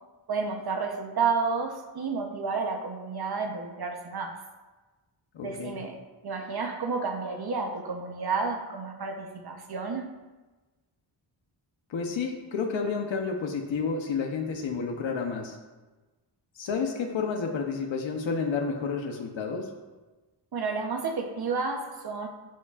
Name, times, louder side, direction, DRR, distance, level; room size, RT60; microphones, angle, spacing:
voice 1, 0.3-4.4 5.4-10.1 20.5-22.3, right 4 dB, 55° right, 4 dB, 0.9 m, -31 dB
voice 2, 5.3-5.8 11.9-15.6 16.6-19.7, left 5 dB, 80° left, 3 dB, 1.0 m, -30 dB
12.0 x 7.1 x 2.5 m, 1.2 s
wide cardioid pair, 115°, 45 cm